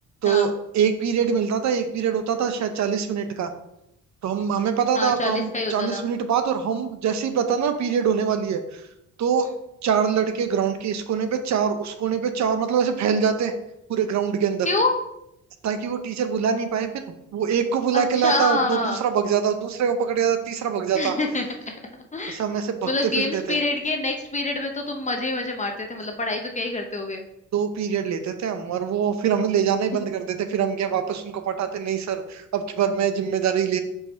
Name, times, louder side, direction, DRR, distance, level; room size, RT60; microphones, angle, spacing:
voice 1, 0.2-3.5 4.2-8.8 9.2-9.5 9.8-13.5 13.9-14.7 15.6-21.1 22.3-23.6 27.5-33.8, right 7 dB, 65° right, 8 dB, 0.8 m, -24 dB
voice 2, 4.9-6.0 14.7-14.9 17.9-19.0 20.9-21.8 22.1-22.4 22.8-27.2 29.9-30.0, left 2 dB, 25° left, 3 dB, 0.8 m, -26 dB
5.3 x 4.8 x 4.5 m, 0.83 s
cardioid pair, 90°, 30 cm